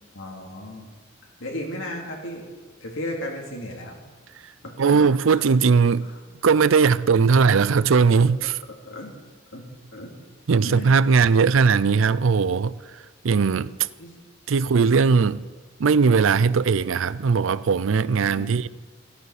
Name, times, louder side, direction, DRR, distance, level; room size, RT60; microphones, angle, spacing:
voice 1, 0.1-0.9 1.4-2.4 2.8-4.0 4.6-5.7 6.0-6.1 8.1-8.3 8.8-9.2 9.5-9.6 9.9-10.1 10.6-10.9 14.0-14.1 18.2-18.6, left 1 dB, 70° left, 3.0 m, -35 dB
voice 2, 4.8-6.1 6.4-8.6 10.5-12.7 13.2-13.7 14.5-15.5 15.8-18.7, right 5 dB, 75° right, 0.5 m, -19 dB
15.0 x 15.0 x 5.0 m
head